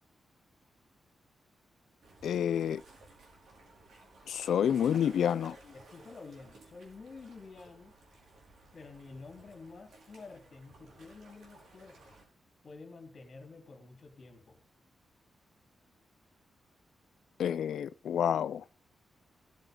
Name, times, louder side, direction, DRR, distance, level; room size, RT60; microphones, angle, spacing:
sound 1, 2.0-12.2, right 2 dB, 75° right, 4.9 m, -57 dB
voice 1, 2.2-2.8 4.3-5.6 17.4-18.6, left 9 dB, 90° left, 0.5 m, -29 dB
voice 2, 5.6-7.9 8.7-12.1 12.6-14.6, left 3 dB, 35° left, 3.7 m, -50 dB
16.5 x 9.0 x 3.8 m
wide cardioid pair, 180°, 0 cm